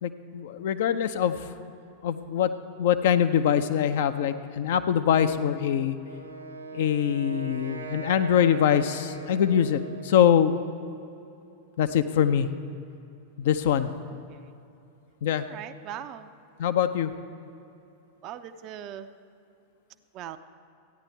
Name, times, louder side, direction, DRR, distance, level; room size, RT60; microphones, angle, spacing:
voice 1, 0.0-1.4 2.0-2.5 2.8-6.0 6.7-10.6 11.8-12.5 13.4-13.9 15.2-15.4 16.6-17.1, left 9 dB, 55° left, 10 dB, 0.5 m, -23 dB
Wind instrument woodwind instrument, 6.0-10.3, right 3 dB, 80° right, 1.2 m, -39 dB
voice 2, 15.4-16.3 18.2-19.1 20.1-20.4, right 10 dB, 40° right, 10 dB, 0.5 m, -40 dB
14.0 x 9.6 x 4.5 m, 2.7 s
figure-of-eight pair, 90°, 0 cm